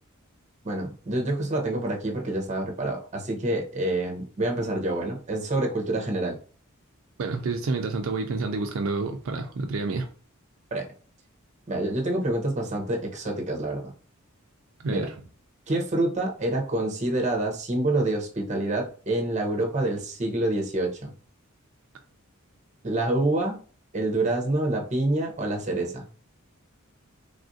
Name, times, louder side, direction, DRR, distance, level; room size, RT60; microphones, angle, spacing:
voice 1, 0.6-6.4 10.7-10.9 11.7-13.9 14.9-15.1 15.7-21.1 22.8-23.6 23.9-26.1, right 1 dB, 35° right, 1 dB, 0.7 m, -27 dB
voice 2, 7.2-10.1 14.8-15.1, right 3 dB, 70° right, 5 dB, 0.4 m, -29 dB
3.4 x 2.4 x 2.6 m, 0.40 s
head